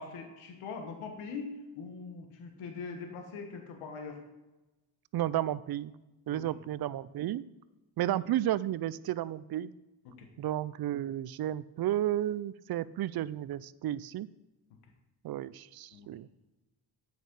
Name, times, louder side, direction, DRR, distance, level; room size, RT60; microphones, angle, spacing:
voice 1, 0.0-4.2 6.3-6.6 10.0-10.3 15.9-16.1, left 4 dB, 85° left, 4 dB, 1.4 m, -42 dB
voice 2, 5.1-5.9 6.3-7.4 8.0-9.7 10.4-14.3 15.2-16.3, right 12 dB, 50° right, 18 dB, 0.5 m, -32 dB
8.6 x 6.2 x 5.3 m, 1.0 s
supercardioid pair, 70°, 49 cm